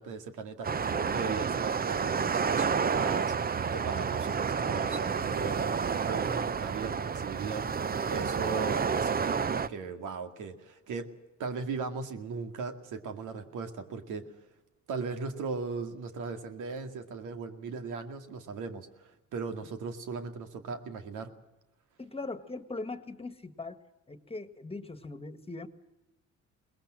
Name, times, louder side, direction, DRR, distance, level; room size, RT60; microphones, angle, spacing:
voice 1, 0.0-11.1 11.4-14.5 14.9-21.3, right 5 dB, 85° right, 7 dB, 2.3 m, -38 dB
sound 1, 0.6-9.7, right 6 dB, 30° right, 0.7 m, -30 dB
voice 2, 22.0-23.8 24.1-25.7, left 3 dB, 20° left, 11 dB, 1.8 m, -40 dB
22.5 x 20.0 x 7.6 m, 0.96 s
cardioid pair, 90°, 30 cm